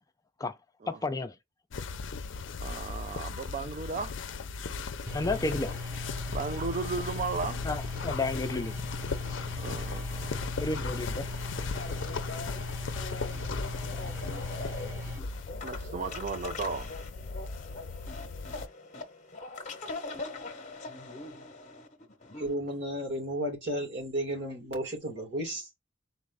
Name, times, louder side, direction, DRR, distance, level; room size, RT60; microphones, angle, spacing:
voice 1, 0.9-1.3 5.1-5.8 7.6-8.8 10.6-11.3, left 3 dB, 20° left, 0.4 m, -32 dB
sound 1, 1.7-18.7, left 4 dB, 70° left, 0.5 m, -37 dB
voice 2, 2.6-4.2 6.3-7.6 9.6-10.6 11.8-11.9 15.6-16.9, right 4 dB, 40° right, 0.4 m, -35 dB
sound 2, 5.1-15.2, left 2 dB, 15° right, 0.7 m, -39 dB
sound 3, 11.7-22.5, left 3 dB, 40° left, 0.9 m, -42 dB
voice 3, 22.4-25.7, right 1 dB, 65° right, 2.2 m, -33 dB
4.0 x 2.5 x 3.5 m
head